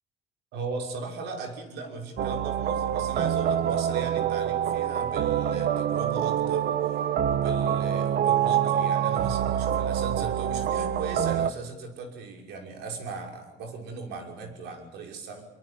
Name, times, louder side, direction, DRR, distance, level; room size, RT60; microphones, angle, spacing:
voice 1, 0.5-6.9 7.3-15.4, right 4 dB, 85° right, 3 dB, 6.1 m, -38 dB
sound 1, 2.2-11.5, right 9 dB, 65° right, 1.2 m, -26 dB
24.0 x 23.0 x 8.5 m, 0.93 s
cardioid pair, 110°, 17 cm